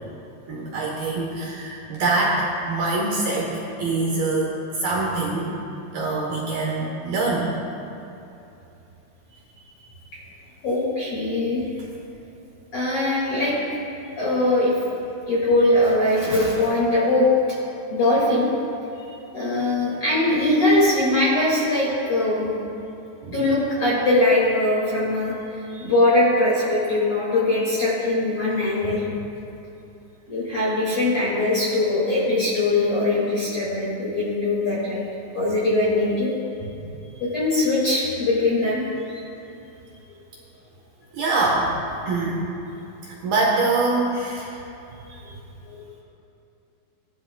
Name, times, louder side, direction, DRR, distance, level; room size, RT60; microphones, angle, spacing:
voice 1, 0.5-5.5 5.9-7.5 23.2-23.4 41.1-41.7 42.1-42.5 43.0-44.6, right 3 dB, 70° right, -4 dB, 2.5 m, -24 dB
voice 2, 10.6-11.6 12.7-13.6 14.2-14.7 15.3-17.3 17.9-18.5 18.9-19.1 19.3-22.5 23.3-29.0 30.3-35.0 35.3-36.3 37.1-38.8 39.1-39.2 45.1-45.3 45.7-45.8, left 2 dB, 45° left, -8 dB, 2.0 m, -21 dB
18.5 x 12.5 x 2.3 m, 2.8 s
omnidirectional pair, 5.5 m